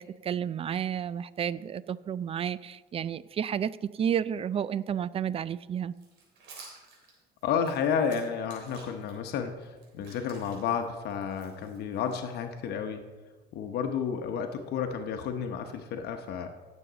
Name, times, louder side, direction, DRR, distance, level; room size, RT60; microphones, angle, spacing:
voice 1, 0.0-5.9, right 8 dB, 35° right, 18 dB, 0.4 m, -31 dB
sound 1, 5.9-9.1 9.6-12.7, right 3 dB, 85° right, 3.7 m, -53 dB
voice 2, 7.4-13.1 13.5-16.5, left 7 dB, 75° left, 6 dB, 1.0 m, -31 dB
17.0 x 7.3 x 4.0 m, 1.3 s
cardioid pair, 110°, 17 cm